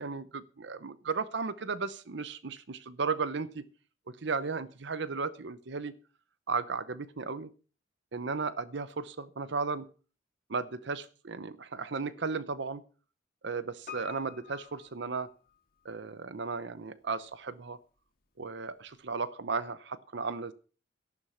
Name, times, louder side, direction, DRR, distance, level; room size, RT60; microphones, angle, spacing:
voice 1, 0.0-3.6 4.1-6.0 6.5-7.5 8.1-9.9 10.5-12.8 13.4-15.3 15.8-17.8 18.4-20.5, right 4 dB, 65° right, 15 dB, 0.8 m, -35 dB
Piano, 13.9-15.9 16.2-16.3, left 8 dB, 55° left, 2.7 m, -48 dB
13.0 x 11.5 x 5.7 m, 0.38 s
head